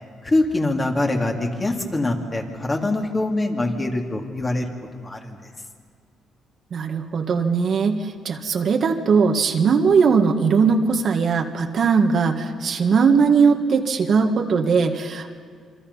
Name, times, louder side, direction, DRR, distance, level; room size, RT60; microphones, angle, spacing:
voice 1, 0.2-4.6 5.0-5.5, left 2 dB, 25° left, 1 dB, 3.2 m, -24 dB
voice 2, 6.7-15.4, right 5 dB, 55° right, 4 dB, 1.8 m, -19 dB
27.5 x 24.5 x 5.7 m, 2.1 s
cardioid pair, 90°, 0 cm